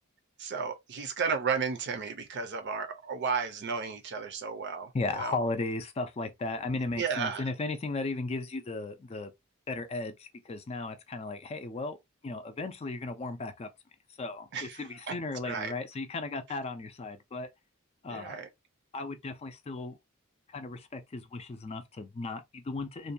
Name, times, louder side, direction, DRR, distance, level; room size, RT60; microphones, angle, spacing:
voice 1, 0.4-5.4 7.0-7.5 14.5-14.8 15.1-15.2 15.4-15.7 18.1-18.5, right 5 dB, 55° right, 0.5 m, -33 dB
voice 2, 4.9-9.3 9.7-12.0 12.2-13.7 14.2-17.5 18.0-18.4 18.9-20.0 20.5-23.1, left 3 dB, 30° left, 0.4 m, -35 dB
2.5 x 2.2 x 2.5 m
head